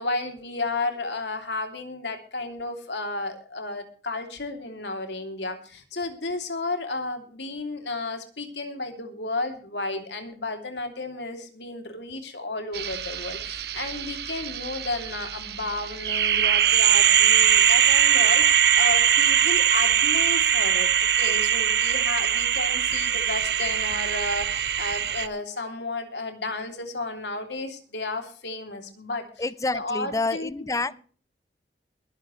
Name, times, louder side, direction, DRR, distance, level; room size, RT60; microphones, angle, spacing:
voice 1, 0.0-29.3 29.6-30.5, left 2 dB, 75° left, 2.9 m, -33 dB
sound 1, 12.7-25.3, right 9 dB, 60° right, 0.9 m, -22 dB
voice 2, 29.4-30.9, left 3 dB, 20° left, 0.5 m, -28 dB
21.5 x 10.5 x 3.2 m
head